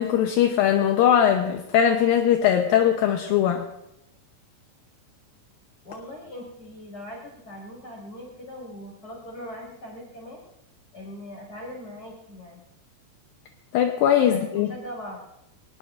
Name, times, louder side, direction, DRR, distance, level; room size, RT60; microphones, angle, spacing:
voice 1, 0.0-3.7 13.7-14.7, left 9 dB, 75° left, 4 dB, 2.3 m, -20 dB
voice 2, 5.8-10.4 10.9-12.6 14.3-15.2, equal, 25° left, -1 dB, 5.7 m, -40 dB
22.5 x 20.0 x 2.6 m, 0.85 s
omnidirectional pair, 4.8 m